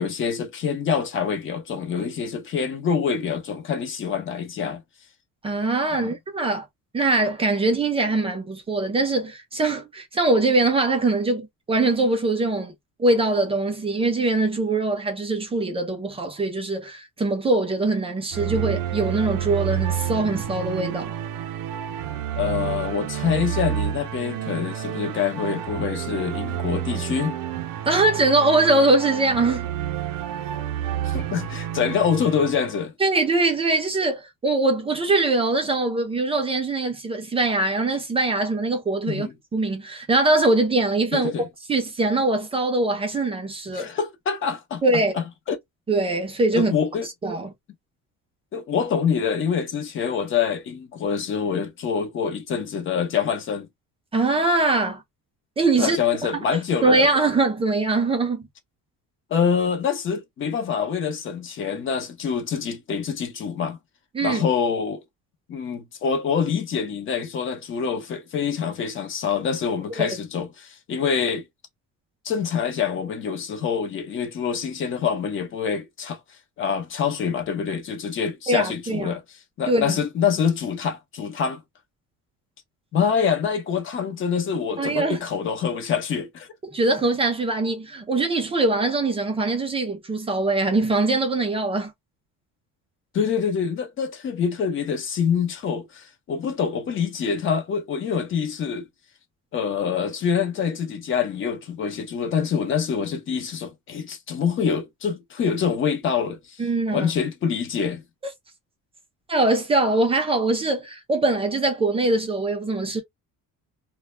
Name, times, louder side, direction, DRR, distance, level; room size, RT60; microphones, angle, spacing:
voice 1, 0.0-4.8 6.0-6.1 22.4-27.4 31.0-32.9 39.1-39.3 41.1-41.5 43.7-44.8 45.1-45.6 46.5-47.1 48.5-53.7 55.8-57.0 59.3-63.8 64.2-65.0 65.5-71.4 72.2-76.2 76.6-79.2 79.6-81.6 82.9-86.5 93.1-98.8 99.5-106.6 106.9-108.0, left 7 dB, 40° left, 0.6 m, -25 dB
voice 2, 5.4-6.7 6.9-12.7 13.0-21.1 27.9-29.7 33.0-41.3 41.7-43.9 44.8-45.1 45.9-46.7 47.2-47.5 54.1-55.0 55.6-56.0 56.8-58.5 64.1-64.4 70.0-70.1 78.5-79.2 79.7-80.0 84.8-85.2 86.7-91.9 106.6-107.1 109.3-113.0, right 2 dB, 15° right, 0.4 m, -22 dB
sound 1, 18.3-32.8, right 10 dB, 80° right, 0.5 m, -29 dB
2.1 x 2.0 x 3.1 m
cardioid pair, 170°, 33 cm